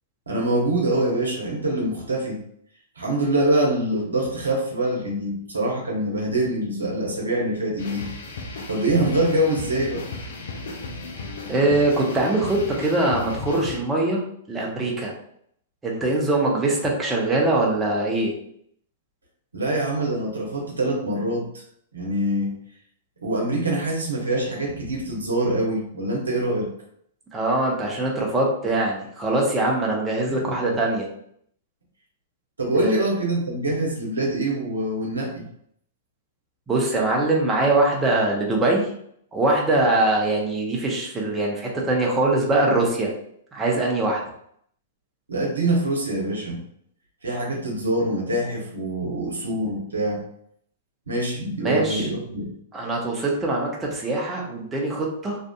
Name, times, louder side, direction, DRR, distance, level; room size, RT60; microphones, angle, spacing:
voice 1, 0.3-2.4 3.0-8.1 8.7-10.1 19.5-21.6 21.9-22.5 23.2-26.7 30.3-30.6 32.6-35.4 45.3-46.6 47.2-50.2 51.1-52.4, right 1 dB, 85° right, -1 dB, 0.8 m, -24 dB
sound 1, 7.8-13.8, left 3 dB, 65° left, 0.5 m, -35 dB
voice 2, 11.5-14.2 14.5-15.1 15.8-18.3 27.3-31.1 32.8-33.0 36.7-38.9 39.3-43.1 43.5-44.2 51.6-52.1 52.7-55.4, right 2 dB, 15° right, -2 dB, 0.7 m, -22 dB
2.6 x 2.4 x 2.3 m, 0.68 s
figure-of-eight pair, 110°, 0 cm